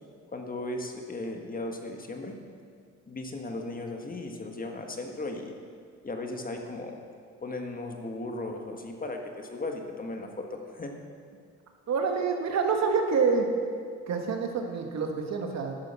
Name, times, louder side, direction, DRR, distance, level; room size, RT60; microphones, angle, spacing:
voice 1, 0.3-2.4 3.1-5.5 6.0-7.0 7.4-10.9, left 2 dB, 30° left, 3 dB, 1.4 m, -36 dB
voice 2, 11.9-13.5 14.1-15.7, right 5 dB, 60° right, 3 dB, 1.5 m, -27 dB
11.5 x 6.7 x 6.9 m, 2.1 s
cardioid pair, 90°, 30 cm